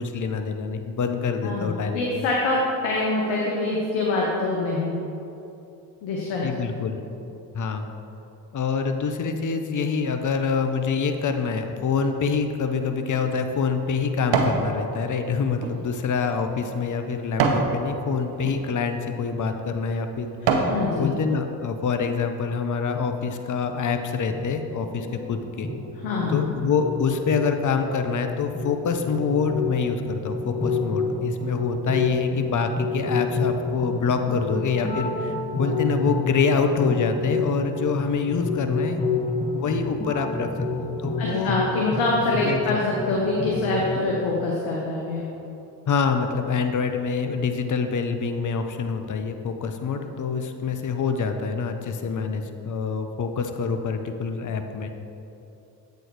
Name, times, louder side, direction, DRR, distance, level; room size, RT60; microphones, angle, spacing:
voice 1, 0.0-2.3 6.4-7.0 7.5-7.9 8.5-25.7 26.3-39.0 39.5-40.5 40.8-41.5 42.4-42.8 45.9-54.9, left 5 dB, 40° left, 7 dB, 0.7 m, -26 dB
voice 2, 1.4-2.6 2.8-4.9 6.0-6.4 20.7-21.1 26.0-26.4 41.2-45.2, left 3 dB, 85° left, -3 dB, 0.9 m, -25 dB
sound 1, 12.8-14.7 15.1-17.7 18.3-18.6 19.3-19.4 19.9-20.8 21.3-21.4, right 4 dB, 70° right, 0.9 m, -26 dB
sound 2, 24.3-44.0, left 2 dB, 15° left, 1.2 m, -29 dB
7.9 x 4.7 x 4.6 m, 2.8 s
hypercardioid pair, 45°, 46 cm